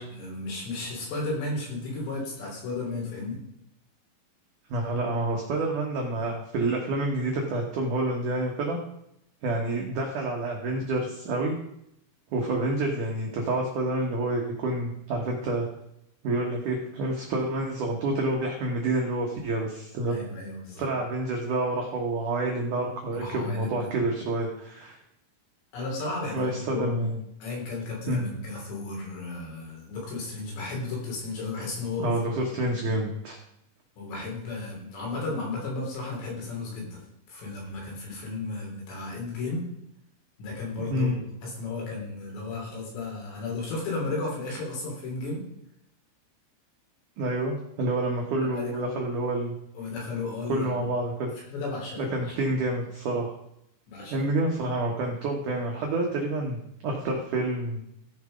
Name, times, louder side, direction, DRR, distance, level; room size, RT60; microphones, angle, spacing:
voice 1, 0.0-3.4 20.0-20.9 23.1-24.0 25.7-27.1 27.4-32.3 32.7-32.9 34.0-37.0 37.3-39.7 40.4-45.4 48.4-49.0 49.8-50.9 51.4-52.7 53.9-54.3, left 3 dB, 60° left, -2 dB, 5.3 m, -34 dB
voice 2, 4.7-8.8 9.4-11.6 12.3-15.7 16.2-20.2 20.8-25.0 26.3-27.2 28.1-28.3 32.0-33.4 40.9-41.2 47.2-49.5 50.5-51.3 52.0-53.4 54.1-57.8, right 2 dB, 80° right, 0 dB, 1.8 m, -28 dB
15.5 x 6.8 x 5.1 m, 0.78 s
omnidirectional pair, 5.9 m